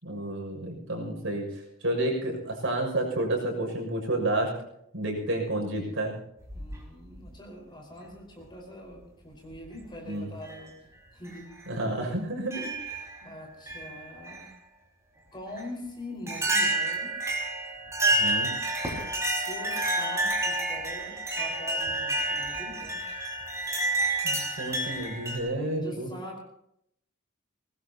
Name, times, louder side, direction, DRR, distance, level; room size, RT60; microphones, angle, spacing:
voice 1, 0.0-1.5 1.8-4.5 4.9-6.2 10.1-10.3 11.7-12.7 18.1-18.5 24.2-26.1, right 1 dB, 65° right, 0 dB, 6.7 m, -30 dB
voice 2, 0.9-1.4 5.8-5.9 6.5-10.7 11.1-11.5 13.2-14.5 15.3-17.1 18.9-23.0 25.8-26.4, equal, 20° left, 0 dB, 4.9 m, -43 dB
sound 1, 6.4-7.3 8.4-8.5 9.5-9.8 10.4-10.6 11.2-11.4 12.5-13.2 13.7-14.4 15.6-15.7 16.3-25.4, right 2 dB, 15° right, 5.2 m, -29 dB
23.5 x 20.0 x 2.9 m, 0.75 s
head